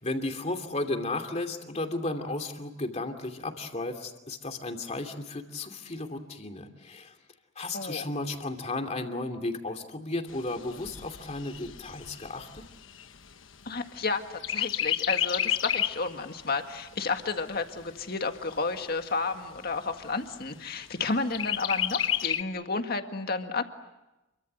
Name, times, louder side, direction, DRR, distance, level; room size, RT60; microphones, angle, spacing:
voice 1, 0.0-7.2 7.6-12.6, left 2 dB, 35° left, 5 dB, 2.7 m, -34 dB
voice 2, 7.7-8.1 13.7-14.2 14.5-23.6, left 3 dB, 50° left, 6 dB, 1.9 m, -31 dB
Chirp tweet, 10.3-14.0 14.4-16.1 16.5-16.6 17.0-18.0 18.6-18.7 19.0-19.1 19.6-20.1 21.3-22.4, left 10 dB, 90° left, 1.2 m, -30 dB
29.0 x 23.5 x 8.0 m, 1.0 s
head